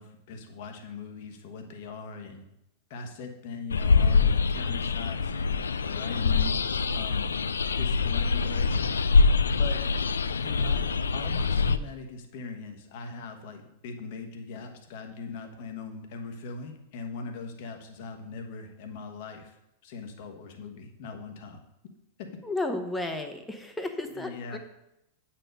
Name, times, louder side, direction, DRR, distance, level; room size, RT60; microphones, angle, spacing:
voice 1, 0.0-2.5 2.9-6.5 6.9-7.3 7.8-9.1 9.4-9.8 10.4-21.6 24.1-24.6, left 4 dB, 50° left, 5 dB, 1.3 m, -40 dB
sound 1, 3.7-11.8, left 4 dB, 70° left, 0.3 m, -24 dB
voice 2, 22.4-24.6, left 2 dB, 10° left, 6 dB, 0.9 m, -33 dB
8.8 x 4.4 x 5.3 m, 0.86 s
figure-of-eight pair, 90°, 0 cm